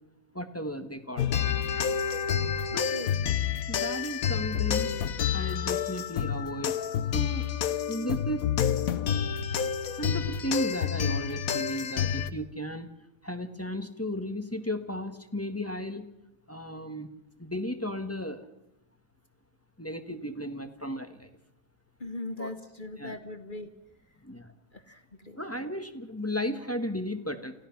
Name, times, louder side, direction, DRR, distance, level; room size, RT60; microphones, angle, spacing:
voice 1, 0.3-1.3 2.7-2.9 3.7-4.9 5.3-6.7 7.1-7.5 7.9-8.4 10.0-12.9 13.2-16.1 16.5-17.1 17.4-18.5 19.8-21.3 22.4-22.5 23.0-23.2 24.2-24.5 25.4-27.5, equal, 10° left, 7 dB, 1.2 m, -34 dB
sound 1, 1.2-12.3, left 8 dB, 60° left, 1.2 m, -29 dB
voice 2, 22.0-23.7 24.7-25.4, left 2 dB, 35° left, 9 dB, 1.1 m, -39 dB
29.0 x 15.5 x 5.9 m, 0.89 s
omnidirectional pair, 1.8 m